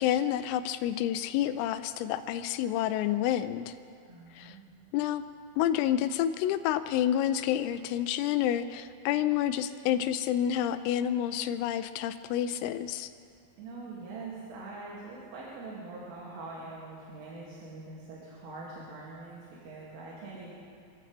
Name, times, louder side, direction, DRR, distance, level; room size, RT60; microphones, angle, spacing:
voice 1, 0.0-3.7 4.4-4.6 4.9-5.2 5.6-13.1, left 11 dB, 85° left, 11 dB, 3.2 m, -29 dB
voice 2, 4.1-4.7 13.6-20.5, right 3 dB, 75° right, -6 dB, 4.8 m, -43 dB
28.0 x 14.5 x 3.3 m, 2.4 s
omnidirectional pair, 6.0 m